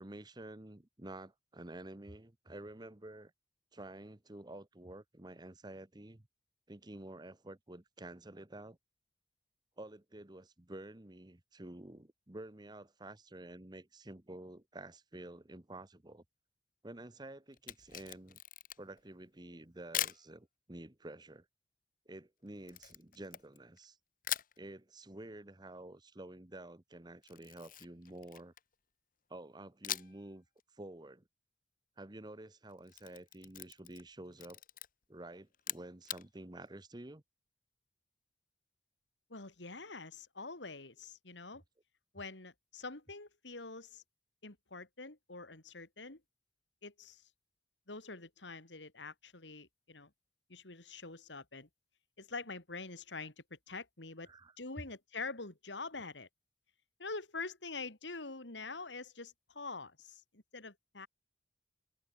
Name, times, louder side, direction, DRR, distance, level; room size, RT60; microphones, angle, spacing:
voice 1, 0.0-3.3 3.7-6.2 6.7-8.8 9.8-16.2 16.8-18.4 18.8-21.4 22.1-24.0 24.6-28.5 29.3-30.4 30.8-31.2 32.0-34.6 35.1-37.2 54.3-54.5, right 1 dB, 25° right, 1.1 m, -50 dB
Camera, 17.5-19.0 19.9-20.2 22.7-23.8 24.2-24.6 27.2-28.7 29.8-30.3 30.6-30.7 32.7-34.1 34.4-34.9 35.5-36.2, left 12 dB, 50° left, 1.5 m, -41 dB
voice 2, 39.3-41.6 42.1-44.0 44.4-46.2 46.8-47.2 47.9-50.1 50.5-51.7 52.2-54.3 54.6-56.3 57.0-61.1, left 3 dB, 90° left, 3.3 m, -45 dB
open air
head